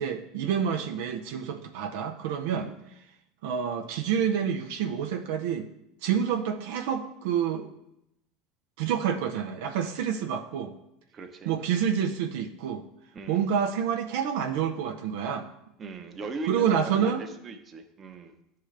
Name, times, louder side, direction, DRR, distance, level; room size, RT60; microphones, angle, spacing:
voice 1, 0.0-2.7 3.4-5.7 6.0-7.7 8.8-10.7 11.5-12.9 13.3-15.5 16.4-17.2, right 8 dB, 75° right, 4 dB, 0.6 m, -28 dB
voice 2, 11.1-11.5 13.1-13.4 15.8-18.3, right 3 dB, 30° right, 6 dB, 0.9 m, -39 dB
11.5 x 3.8 x 3.3 m, 0.82 s
hypercardioid pair, 95°, 0 cm